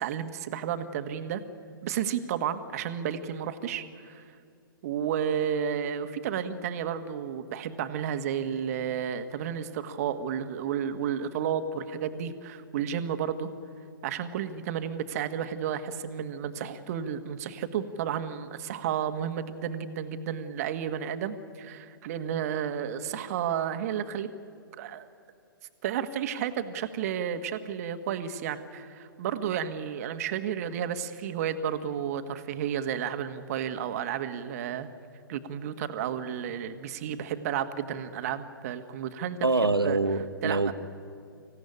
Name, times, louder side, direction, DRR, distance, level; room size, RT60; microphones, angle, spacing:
voice 1, 0.0-1.4 1.8-4.2 4.8-13.5 14.0-24.3 24.8-25.1 25.8-34.9 35.3-40.0 40.4-40.7, right 8 dB, 45° right, 10 dB, 1.6 m, -32 dB
voice 2, 39.4-40.7, right 3 dB, 90° right, 11 dB, 1.2 m, -25 dB
25.5 x 16.0 x 9.9 m, 2.4 s
figure-of-eight pair, 120°, 12 cm